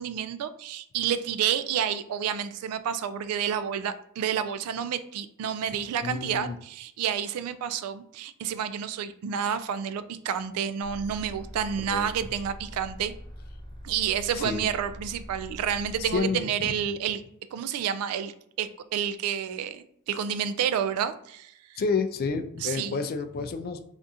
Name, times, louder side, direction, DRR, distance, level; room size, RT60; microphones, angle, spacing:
voice 1, 0.0-13.1 13.8-17.2 17.5-21.8 22.6-23.0, right 8 dB, 85° right, 13 dB, 0.3 m, -30 dB
voice 2, 6.0-6.6 11.8-12.1 14.4-14.7 16.1-16.7 21.8-23.8, left 4 dB, 45° left, 8 dB, 0.3 m, -29 dB
sound 1, 10.8-16.2, equal, 45° right, 1.2 m, -43 dB
3.5 x 2.5 x 2.7 m, 0.70 s
head